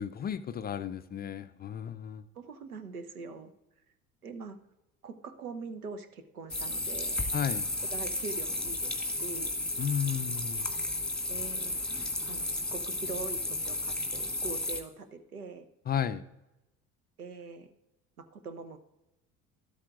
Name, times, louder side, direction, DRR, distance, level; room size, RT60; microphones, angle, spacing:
voice 1, 0.0-2.2 7.3-7.7 9.8-10.7 15.9-16.2, left 8 dB, 25° left, 11 dB, 0.4 m, -33 dB
voice 2, 2.3-3.5 4.2-4.6 5.0-7.3 7.9-9.6 11.3-11.8 12.3-15.7 17.2-17.7 18.2-18.8, right 4 dB, 90° right, 10 dB, 0.8 m, -43 dB
sound 1, 6.5-14.8, left 2 dB, ahead, 1.6 m, -33 dB
13.0 x 12.5 x 2.4 m, 0.95 s
figure-of-eight pair, 60°, 43 cm